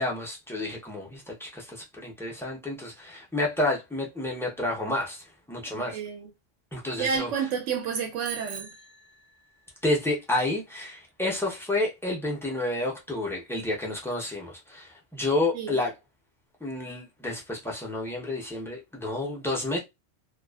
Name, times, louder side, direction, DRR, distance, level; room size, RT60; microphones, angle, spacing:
voice 1, 0.0-6.0 6.7-7.3 9.8-15.9 16.6-19.8, left 2 dB, 5° left, 0.4 m, -30 dB
voice 2, 5.7-6.3 7.0-8.7 15.5-15.8, right 6 dB, 90° right, 0.9 m, -30 dB
Bicycle bell, 8.2-9.8, right 8 dB, 55° right, 0.6 m, -42 dB
2.3 x 2.3 x 2.2 m
omnidirectional pair, 1.2 m